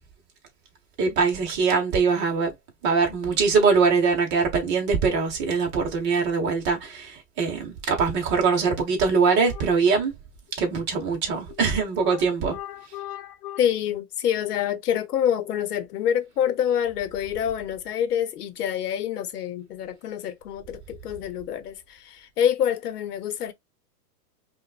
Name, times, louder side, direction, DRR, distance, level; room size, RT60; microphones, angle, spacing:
voice 1, 1.0-2.5 2.8-10.1 10.6-12.6, right 5 dB, 20° right, 1.3 m, -22 dB
voice 2, 12.5-23.5, left 9 dB, 70° left, 1.1 m, -27 dB
5.3 x 2.6 x 2.5 m
hypercardioid pair, 155°, 48 cm